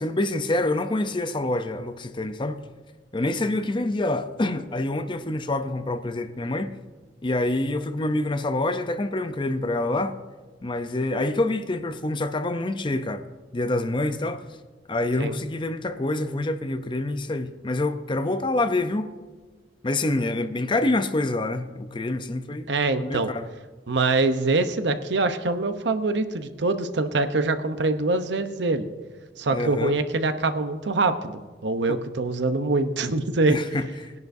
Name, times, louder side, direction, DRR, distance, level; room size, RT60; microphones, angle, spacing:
voice 1, 0.0-2.6 3.1-6.7 7.2-10.2 10.6-13.3 13.5-14.4 14.9-19.1 19.8-22.7 23.0-23.5 29.5-30.0 31.9-32.0 33.5-34.1, left 2 dB, 25° left, 0.6 m, -26 dB
voice 2, 22.7-23.3 23.9-28.9 29.4-33.6, right 3 dB, 70° right, 0.8 m, -24 dB
20.0 x 10.5 x 2.7 m
head